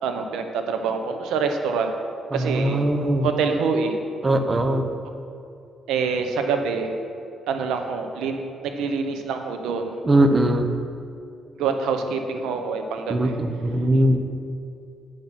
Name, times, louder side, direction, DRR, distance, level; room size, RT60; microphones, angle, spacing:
voice 1, 0.0-1.9 2.3-2.8 3.2-3.9 5.9-6.9 7.5-9.9 11.6-13.4, right 5 dB, 90° right, 5 dB, 0.9 m, -26 dB
voice 2, 2.3-3.3 4.2-4.9 10.0-10.7 13.1-14.2, right 1 dB, 25° right, 7 dB, 0.9 m, -20 dB
8.6 x 6.6 x 5.9 m, 2.6 s
cardioid pair, 90°, 0 cm